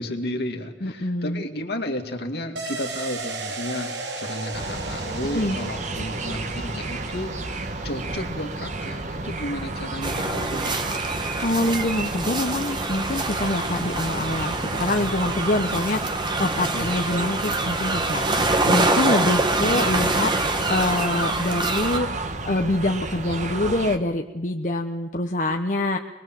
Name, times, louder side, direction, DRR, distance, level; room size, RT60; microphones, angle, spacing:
voice 1, 0.0-10.8 16.7-16.9, left 1 dB, 60° left, 4 dB, 2.5 m, -32 dB
voice 2, 0.8-1.4 5.3-5.6 11.1-20.3 20.7-26.0, left 2 dB, 45° left, 4 dB, 1.0 m, -25 dB
sound 1, 2.6-12.0 12.3-12.4, right 3 dB, 70° right, 3.0 m, -37 dB
sound 2, 4.5-24.0, right 2 dB, 40° right, 1.4 m, -32 dB
sound 3, 10.0-22.0, right 2 dB, 25° right, 1.8 m, -25 dB
23.0 x 22.0 x 7.7 m, 1.1 s
head